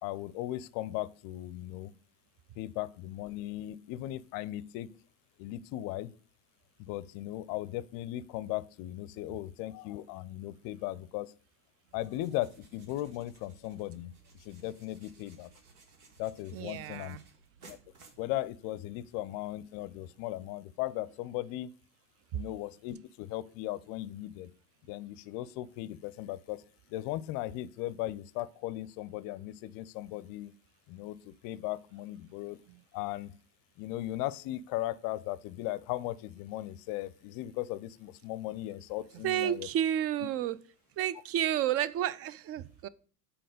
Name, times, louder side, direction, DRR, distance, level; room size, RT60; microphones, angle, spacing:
voice 1, 0.0-1.9 2.6-4.9 5.4-6.1 6.8-11.3 11.9-14.1 14.4-15.5 16.2-17.2 17.6-17.8 18.2-21.7 22.3-24.5 24.9-26.6 26.9-30.5 30.9-32.6 32.9-33.3 33.8-39.7, left 15 dB, 50° left, 0.5 m, -37 dB
sound 1, 11.9-18.9, right 4 dB, 80° right, 1.6 m, -59 dB
voice 2, 16.5-17.2 22.3-22.4 32.7-32.8 39.1-40.6 41.0-42.9, right 11 dB, 35° right, 0.4 m, -31 dB
7.6 x 4.3 x 5.0 m
hypercardioid pair, 75°, 45 cm